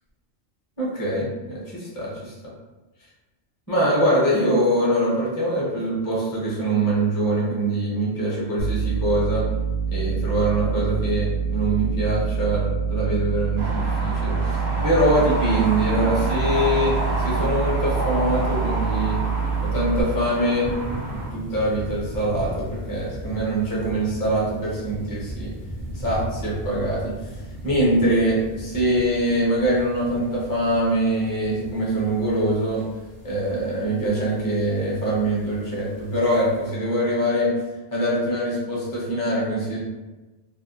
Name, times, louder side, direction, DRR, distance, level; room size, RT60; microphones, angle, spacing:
voice 1, 0.8-2.3 3.7-9.5 9.9-19.2 19.6-20.7 21.1-25.5 25.9-32.8 33.2-37.5 37.9-39.8, right 1 dB, 20° left, -6 dB, 0.7 m, -23 dB
sound 1, 8.6-20.0, right 6 dB, 70° left, 0.8 m, -26 dB
sound 2, 13.6-21.3, right 1 dB, 55° right, 0.8 m, -29 dB
sound 3, 16.9-36.7, equal, 25° right, 0.5 m, -38 dB
2.5 x 2.2 x 2.6 m, 1.2 s
omnidirectional pair, 1.2 m